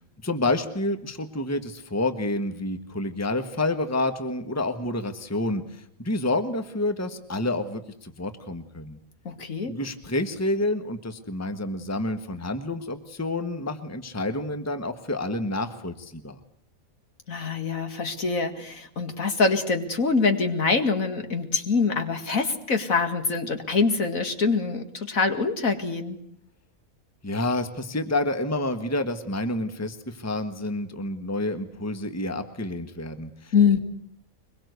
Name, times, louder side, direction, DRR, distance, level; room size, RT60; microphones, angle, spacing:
voice 1, 0.2-9.0 9.7-16.4 27.2-33.5, left 2 dB, 10° left, 9 dB, 1.5 m, -29 dB
voice 2, 9.2-9.8 17.3-26.2 33.5-33.8, left 4 dB, 70° left, 7 dB, 2.5 m, -24 dB
23.5 x 22.0 x 8.2 m, 0.70 s
omnidirectional pair, 1.5 m